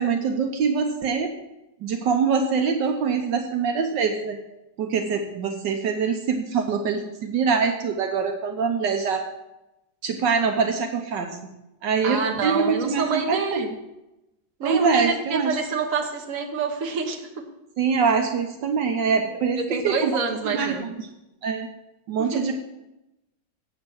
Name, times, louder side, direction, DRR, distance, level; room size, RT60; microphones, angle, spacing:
voice 1, 0.0-1.3 1.8-4.4 4.8-9.3 10.0-11.5 11.8-13.8 14.6-15.6 17.8-20.1 20.5-20.9 21.4-21.7 22.1-22.5, right 5 dB, 70° right, 4 dB, 1.5 m, -24 dB
voice 2, 12.0-13.6 14.6-17.4 19.3-20.9 22.2-22.4, right 5 dB, 50° right, 3 dB, 1.4 m, -27 dB
8.0 x 7.9 x 6.1 m, 0.93 s
omnidirectional pair, 2.0 m